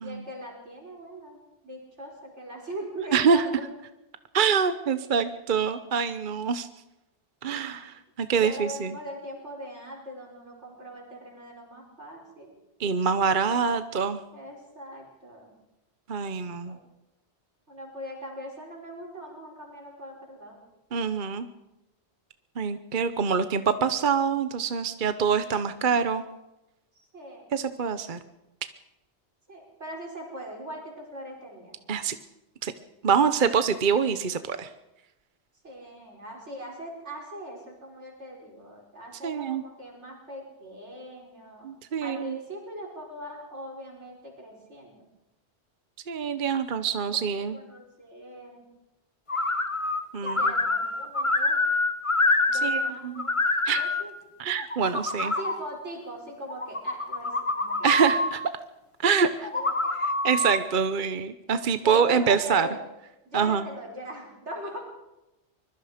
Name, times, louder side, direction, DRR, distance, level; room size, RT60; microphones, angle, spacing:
voice 1, 0.0-1.4 1.6-3.7 8.4-12.5 14.3-15.5 16.6-16.8 17.7-20.6 26.9-27.4 29.5-31.8 35.6-41.7 42.0-45.0 47.5-48.7 50.2-51.6 52.5-53.3 53.8-54.1 55.2-57.9 59.3-60.0 61.8-62.8 63.3-64.8, right 1 dB, 80° right, -1 dB, 5.5 m, -40 dB
voice 2, 3.1-3.4 4.3-6.7 7.4-8.9 12.8-14.2 16.1-16.8 20.9-21.5 22.6-26.2 27.5-28.2 31.9-32.2 32.6-32.7 33.0-34.7 39.2-39.6 41.6-42.4 46.1-47.6 50.1-50.5 52.5-53.3 53.7-53.9 54.4-55.3 57.8-58.4 59.0-59.3 60.2-62.7 63.3-63.6, right 6 dB, 50° right, 11 dB, 1.0 m, -25 dB
sound 1, 49.3-50.0 50.3-52.9 53.2-54.0 54.6-55.5 56.5-58.3 59.4-60.6, left 2 dB, 30° left, 1.5 m, -26 dB
24.5 x 22.0 x 5.1 m, 0.95 s
omnidirectional pair, 1.2 m